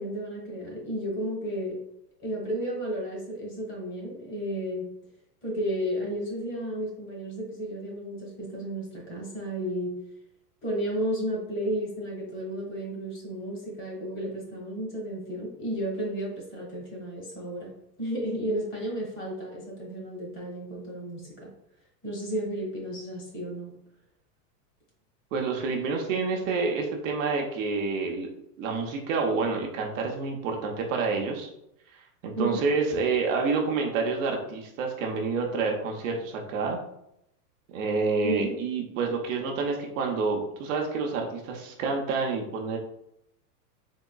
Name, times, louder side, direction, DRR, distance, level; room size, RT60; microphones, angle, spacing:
voice 1, 0.0-1.8 2.2-4.9 5.4-9.9 10.6-17.7 18.0-21.5 22.0-23.7 32.3-32.6 38.2-38.5, right 1 dB, 25° left, -2 dB, 1.2 m, -33 dB
voice 2, 25.3-28.3 28.6-31.5 31.9-36.8 37.7-42.8, right 4 dB, 55° right, 1 dB, 0.7 m, -28 dB
3.7 x 2.9 x 2.2 m, 0.79 s
supercardioid pair, 140°, 48 cm